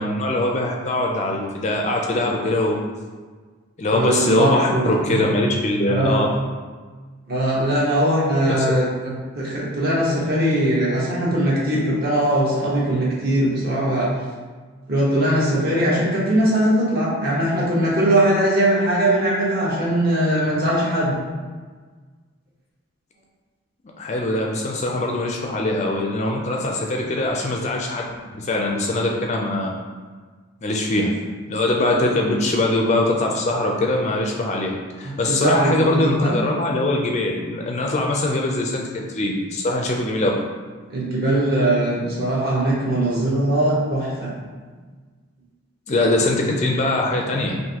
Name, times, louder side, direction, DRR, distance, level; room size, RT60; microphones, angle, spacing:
voice 1, 0.0-2.8 3.8-6.3 8.7-8.8 24.0-28.1 28.3-29.7 30.6-31.1 31.5-40.3 45.9-47.5, left 2 dB, 30° left, 0 dB, 0.4 m, -22 dB
voice 2, 3.9-5.2 5.9-6.2 7.3-14.1 14.9-21.1 35.0-36.5 40.9-44.3, right 1 dB, 45° right, -6 dB, 1.1 m, -20 dB
5.7 x 2.7 x 2.8 m, 1.5 s
head